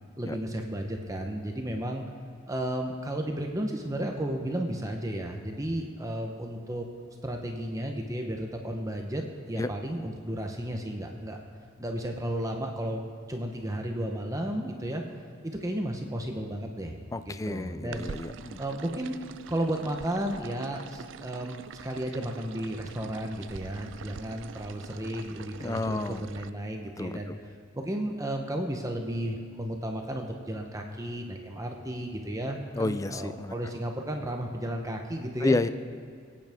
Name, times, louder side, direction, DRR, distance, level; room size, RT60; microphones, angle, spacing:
voice 1, 0.2-2.0 2.5-6.9 7.2-11.4 11.8-13.0 13.3-15.0 15.4-16.9 17.3-18.1 18.6-19.2 19.5-27.3 27.7-35.6, right 1 dB, 15° right, 3 dB, 0.8 m, -33 dB
voice 2, 17.1-18.6 25.6-26.2 27.0-27.4 32.7-33.5 35.4-35.7, left 2 dB, 15° left, 11 dB, 0.4 m, -30 dB
sound 1, 17.9-26.5, right 6 dB, 60° right, 0.4 m, -45 dB
21.5 x 9.2 x 3.6 m, 2.3 s
head